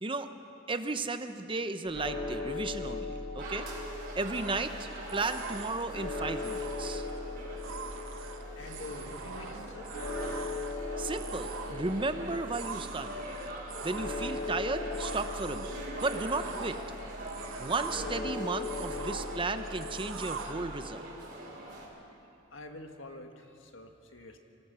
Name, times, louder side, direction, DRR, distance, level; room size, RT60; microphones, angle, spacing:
voice 1, 0.7-3.7 4.2-7.1 11.0-13.2 13.8-15.7 16.0-16.8 17.6-21.1, right 3 dB, 25° right, 9 dB, 0.8 m, -34 dB
sound 1, 1.9-20.6, left 3 dB, 45° left, 7.2 m, -40 dB
sound 2, 3.4-21.9, right 1 dB, 50° right, 5.7 m, -43 dB
sound 3, 4.3-20.5, right 6 dB, 85° right, 1.2 m, -45 dB
voice 2, 8.6-9.9 22.5-24.4, left 2 dB, 75° left, 5 dB, 1.8 m, -46 dB
24.0 x 19.0 x 6.9 m, 2.7 s
head